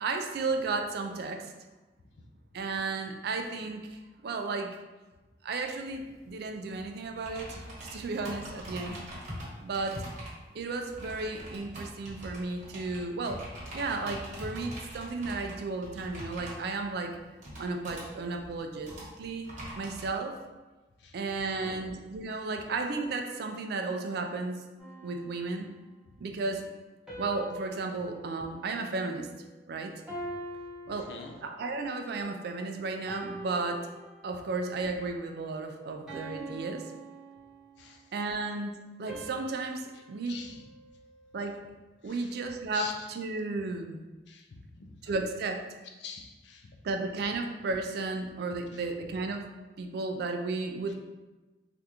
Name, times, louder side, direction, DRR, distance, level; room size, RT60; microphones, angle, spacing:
voice 1, 0.0-1.5 2.5-4.8 5.4-7.6 7.9-9.0 9.6-10.0 10.5-13.4 13.7-17.2 17.6-19.5 19.8-20.4 21.1-24.6 25.0-25.7 26.2-26.6 27.2-29.3 29.7-30.0 30.9-31.1 31.4-33.9 34.2-36.9 38.1-40.4 41.3-41.6 42.0-44.0 45.0-45.6 46.8-49.5 49.8-50.9, right 3 dB, 60° right, 5 dB, 0.3 m, -34 dB
sound 1, 5.9-20.1, equal, 45° right, 1.0 m, -44 dB
sound 2, 24.8-26.1 27.1-29.6 30.1-31.8 32.4-32.6 33.1-34.6 35.1-35.4 36.1-38.0 39.1-41.5, right 1 dB, 5° right, 0.8 m, -45 dB
voice 2, 44.3-44.9 46.0-46.6, left 6 dB, 75° left, 3 dB, 0.4 m, -44 dB
3.4 x 2.5 x 2.8 m, 1.2 s
head